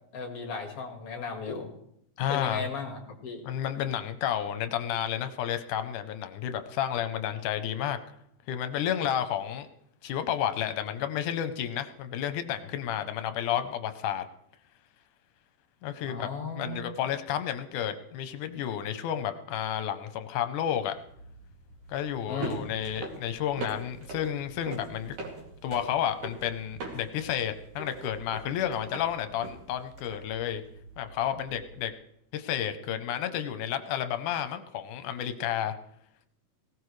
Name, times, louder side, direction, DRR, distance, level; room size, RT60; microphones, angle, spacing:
voice 1, 0.1-1.7 2.3-3.5 16.1-16.9 22.3-22.7, left 4 dB, 50° left, 3 dB, 2.6 m, -36 dB
voice 2, 2.2-2.7 3.4-8.0 8.5-9.7 10.0-14.3 15.8-21.0 21.9-25.2 25.6-30.6 31.0-31.9 32.3-35.7, left 10 dB, 80° left, 10 dB, 2.3 m, -31 dB
sound 1, 20.9-31.8, right 2 dB, 80° right, 4.0 m, -43 dB
18.5 x 17.0 x 3.2 m, 0.73 s
omnidirectional pair, 3.6 m